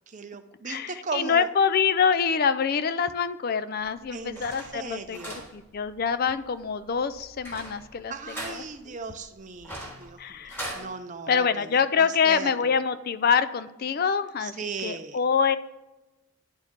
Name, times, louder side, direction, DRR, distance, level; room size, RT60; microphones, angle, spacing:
voice 1, 0.1-1.5 4.1-4.4 4.7-5.5 8.1-12.8 14.4-15.2, right 4 dB, 35° right, 8 dB, 0.5 m, -37 dB
voice 2, 0.7-5.2 5.5-8.1 8.5-9.0 10.2-10.6 11.3-15.6, left 6 dB, 45° left, 13 dB, 0.3 m, -25 dB
sound 1, 3.8-10.9, right 1 dB, 10° left, 1.5 m, -42 dB
10.5 x 4.5 x 3.7 m, 1.0 s
head